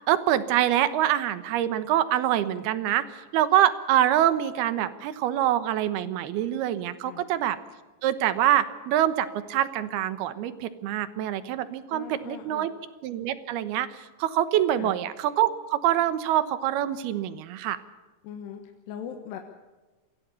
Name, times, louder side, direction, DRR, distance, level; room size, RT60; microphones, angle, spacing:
voice 1, 0.1-7.6 8.0-12.7 13.0-17.8, right 12 dB, 75° right, 13 dB, 3.0 m, -25 dB
voice 2, 11.9-12.7 14.8-14.9 18.2-18.6 18.9-19.4, left 9 dB, 90° left, 4 dB, 3.5 m, -39 dB
24.5 x 16.5 x 7.0 m, 1.3 s
omnidirectional pair, 4.8 m